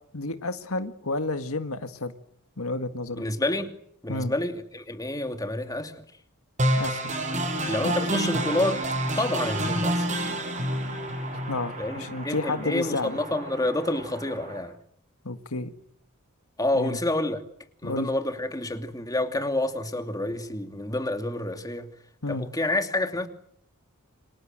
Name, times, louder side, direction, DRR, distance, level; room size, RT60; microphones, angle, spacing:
voice 1, 0.1-2.1 2.6-3.2 4.1-4.3 6.8-7.1 7.8-7.9 11.3-13.2 15.2-15.7 16.7-17.0 17.8-18.1 22.2-22.5, left 2 dB, 75° left, 1.9 m, -31 dB
voice 2, 3.2-3.7 4.0-6.0 7.7-8.8 9.1-10.3 11.8-14.7 16.6-17.4 17.8-21.9 22.3-23.3, left 1 dB, 15° left, 2.7 m, -28 dB
sound 1, 6.6-14.6, right 1 dB, 35° right, 7.2 m, -29 dB
28.5 x 26.5 x 7.8 m
head